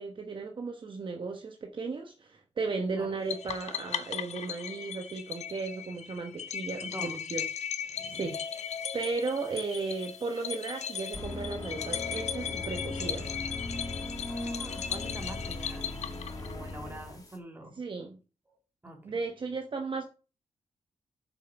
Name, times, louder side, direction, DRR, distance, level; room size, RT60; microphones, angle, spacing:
voice 1, 0.0-7.4 7.8-13.3 17.8-18.2 19.0-20.0, right 4 dB, 45° right, 1.1 m, -35 dB
sound 1, 3.3-16.7, left 8 dB, 75° left, 0.9 m, -37 dB
voice 2, 6.8-7.2 7.9-8.3 14.3-15.9 16.3-17.8 18.5-18.6 18.8-19.2, right 1 dB, 15° right, 2.6 m, -45 dB
sound 2, 8.7-17.4, left 2 dB, 30° left, 1.9 m, -40 dB
7.1 x 6.3 x 5.9 m
wide cardioid pair, 110°, 12 cm